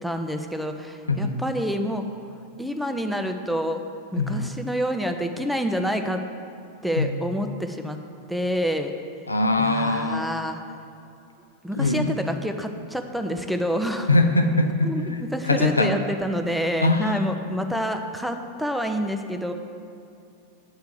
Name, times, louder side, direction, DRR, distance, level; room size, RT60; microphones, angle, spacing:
voice 1, 0.0-2.0 2.6-3.8 4.1-6.2 6.8-8.0 8.3-8.9 9.6-10.6 11.6-14.1 14.8-19.5, equal, ahead, 5 dB, 0.5 m, -27 dB
voice 2, 9.3-10.2 11.8-12.1 14.1-14.7 15.5-15.9 16.8-17.2, left 2 dB, 80° left, 6 dB, 0.5 m, -21 dB
8.1 x 4.6 x 6.7 m, 2.6 s
figure-of-eight pair, 90°, 0 cm